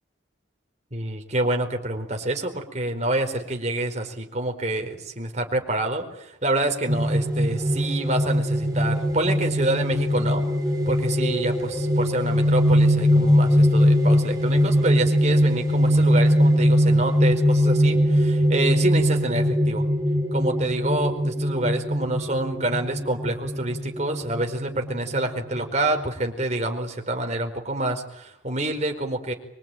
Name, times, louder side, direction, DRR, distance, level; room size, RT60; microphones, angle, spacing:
voice 1, 0.9-10.4 10.9-19.9 20.3-29.3, right 1 dB, 35° right, 4 dB, 4.6 m, -27 dB
sound 1, 6.9-26.0, equal, 20° right, 5.0 m, -21 dB
25.0 x 23.5 x 9.3 m, 0.74 s
head